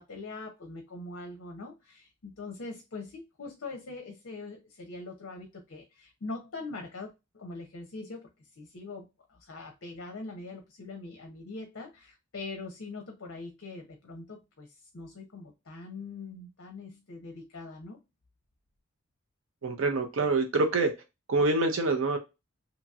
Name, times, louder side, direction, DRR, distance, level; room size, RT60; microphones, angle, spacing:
voice 1, 0.0-18.0, left 3 dB, 55° left, 0.6 m, -42 dB
voice 2, 19.6-20.9 21.3-22.2, right 3 dB, 65° right, 0.6 m, -26 dB
2.9 x 2.8 x 2.3 m
head